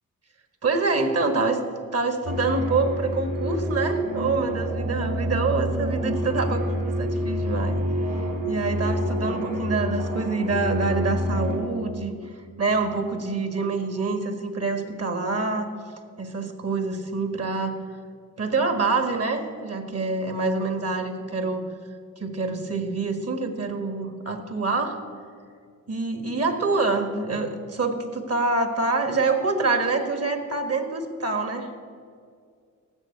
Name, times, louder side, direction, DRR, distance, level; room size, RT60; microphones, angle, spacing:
voice 1, 0.6-1.6 1.9-7.8 8.5-12.1 12.6-15.7 16.2-17.8 18.4-21.6 22.2-25.0 25.9-31.7, right 3 dB, 45° right, 7 dB, 1.7 m, -26 dB
sound 1, 2.2-11.6, equal, 75° right, 3.5 m, -27 dB
14.5 x 6.4 x 8.7 m, 2.2 s
cardioid pair, 70°, 34 cm